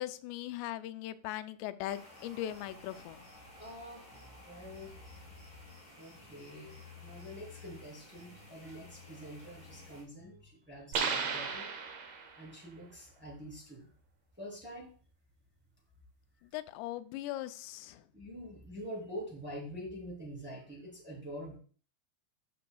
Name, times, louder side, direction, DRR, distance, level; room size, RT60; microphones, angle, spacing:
voice 1, 0.0-3.3 16.4-18.1, left 13 dB, 90° left, 11 dB, 2.7 m, -39 dB
sound 1, 1.9-10.0, left 1 dB, 45° left, 5.4 m, -55 dB
sound 2, 2.6-10.5, left 6 dB, 25° left, 5.1 m, -56 dB
voice 2, 3.6-4.1 4.4-5.0 5.9-11.7 12.3-13.9 14.4-14.9 18.1-21.6, equal, 5° right, -4 dB, 2.6 m, -46 dB
sound 3, 10.9-12.5, right 5 dB, 80° right, 1.5 m, -34 dB
13.5 x 6.0 x 2.3 m, 0.41 s
omnidirectional pair, 4.8 m